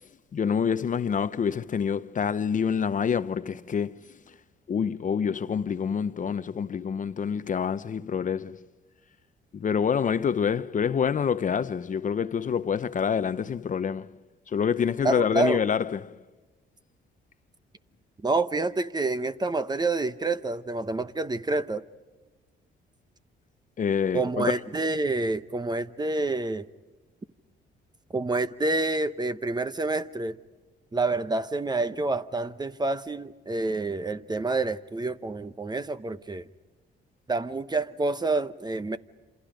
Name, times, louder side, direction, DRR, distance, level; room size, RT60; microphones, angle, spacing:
voice 1, 0.3-4.0 4.7-8.6 9.5-14.1 14.5-16.2 23.8-24.5, left 7 dB, 40° left, 0.7 m, -27 dB
voice 2, 15.0-15.6 18.2-21.8 24.1-26.7 28.1-30.4 30.9-36.5 37.3-39.0, right 3 dB, 20° right, 0.9 m, -28 dB
27.5 x 27.5 x 5.1 m
cardioid pair, 90°, 20 cm